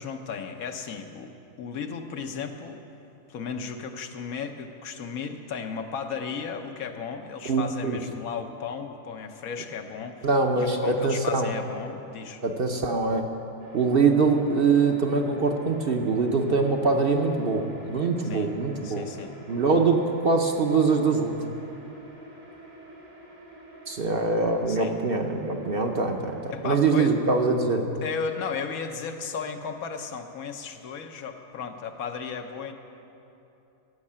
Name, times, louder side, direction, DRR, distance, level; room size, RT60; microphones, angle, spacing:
voice 1, 0.0-2.8 3.3-10.3 10.6-12.4 18.2-18.5 18.8-19.3 24.7-24.9 26.5-27.1 27.8-32.7, left 6 dB, 80° left, 6 dB, 1.3 m, -35 dB
voice 2, 7.5-8.0 10.2-11.5 12.4-13.3 13.7-19.0 19.5-21.3 23.9-27.8, right 4 dB, 50° right, 4 dB, 0.8 m, -23 dB
sound 1, 13.6-26.9, right 1 dB, 80° right, 2.8 m, -46 dB
15.0 x 6.5 x 8.6 m, 2.8 s
omnidirectional pair, 1.5 m